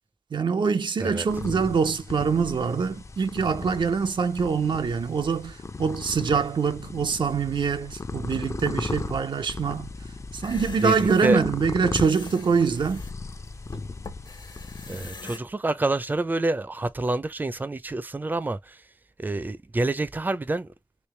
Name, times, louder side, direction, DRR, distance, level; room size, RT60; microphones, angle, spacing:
voice 1, 0.3-9.9 10.3-13.0, right 5 dB, 80° right, 0.5 m, -24 dB
sound 1, 1.3-15.1, left 3 dB, 40° left, 0.5 m, -37 dB
sound 2, 10.3-15.4, left 4 dB, 70° left, 1.2 m, -42 dB
voice 2, 10.8-11.4 14.9-18.7 19.2-20.7, right 2 dB, 25° right, 0.4 m, -27 dB
3.2 x 2.9 x 3.2 m
wide cardioid pair, 90°, 8 cm